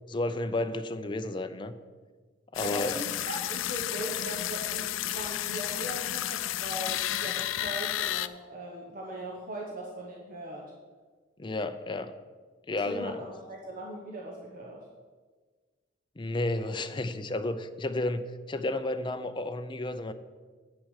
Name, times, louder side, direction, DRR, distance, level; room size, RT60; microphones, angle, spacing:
voice 1, 0.1-1.7 2.5-3.0 11.4-12.1 12.7-13.2 16.2-20.1, left 2 dB, 25° left, 9 dB, 0.5 m, -32 dB
sound 1, 2.5-8.3, left 13 dB, 85° left, 0.4 m, -32 dB
voice 2, 2.6-10.6 12.8-14.8, right 1 dB, 45° right, -2 dB, 1.1 m, -39 dB
8.7 x 6.1 x 6.4 m, 1.4 s
head